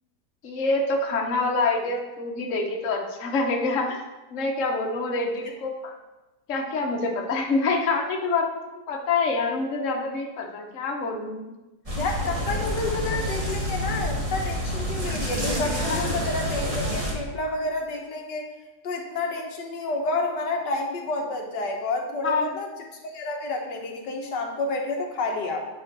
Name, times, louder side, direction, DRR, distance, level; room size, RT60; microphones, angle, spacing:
voice 1, 0.4-4.0 4.3-5.9 6.5-8.6 8.9-11.4 15.8-16.1 22.2-22.6, left 3 dB, 50° left, 1 dB, 1.3 m, -26 dB
sound 1, 11.9-17.1, equal, 20° right, 1.4 m, -28 dB
voice 2, 12.0-18.4 18.8-22.7 23.0-25.6, left 2 dB, 90° left, 1 dB, 1.8 m, -29 dB
8.7 x 3.8 x 6.0 m, 1.1 s
omnidirectional pair, 1.8 m